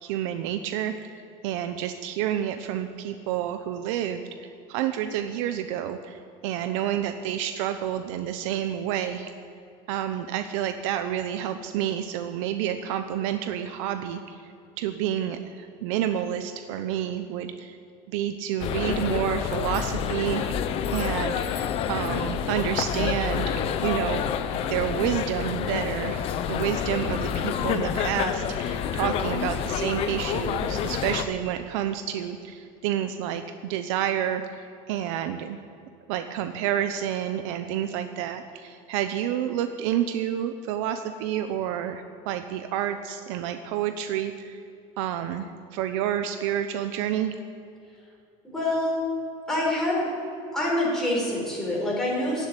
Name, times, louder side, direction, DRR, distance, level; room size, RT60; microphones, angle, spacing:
voice 1, 0.0-9.3 9.9-14.5 14.8-17.8 18.1-20.6 20.9-24.2 24.7-35.6 36.1-44.6 45.0-47.3, right 10 dB, 85° right, 8 dB, 0.9 m, -29 dB
sound 1, 18.6-31.2, left 8 dB, 40° left, 0.8 m, -28 dB
voice 2, 48.5-49.0 49.5-50.1 50.5-52.5, left 1 dB, 5° left, -5 dB, 4.9 m, -26 dB
15.5 x 8.0 x 9.8 m, 2.6 s
cardioid pair, 175°, 16 cm